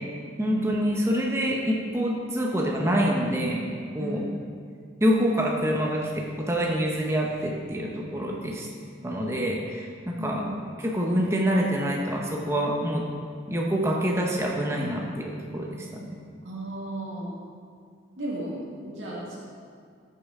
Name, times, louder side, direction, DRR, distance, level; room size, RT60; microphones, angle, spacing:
voice 1, 0.4-3.6 3.9-4.2 5.0-8.7 9.0-10.4 10.8-13.1 13.5-15.9, equal, 15° right, -1 dB, 0.8 m, -26 dB
voice 2, 10.2-10.5 16.4-17.4 18.2-19.4, right 1 dB, 90° right, -5 dB, 1.9 m, -34 dB
13.5 x 6.7 x 3.7 m, 2.2 s
head